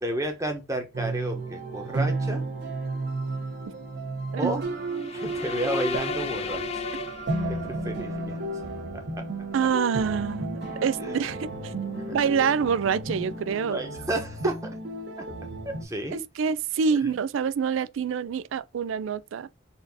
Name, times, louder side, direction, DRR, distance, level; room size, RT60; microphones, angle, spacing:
voice 1, 0.0-2.4 4.4-4.6 5.1-6.8 7.5-8.4 8.9-9.2 11.0-11.2 12.1-12.2 13.7-14.5 15.2-15.3 15.6-16.2, right 1 dB, 15° right, 1.0 m, -31 dB
sound 1, 0.9-15.8, right 2 dB, 60° right, 1.3 m, -33 dB
voice 2, 4.3-4.6 9.5-11.7 12.1-13.8 16.1-19.5, right 6 dB, 75° right, 0.3 m, -26 dB
sound 2, 4.9-7.9, left 5 dB, 30° left, 0.3 m, -34 dB
sound 3, 10.6-15.0, left 2 dB, 80° left, 1.2 m, -47 dB
4.2 x 2.7 x 4.0 m
head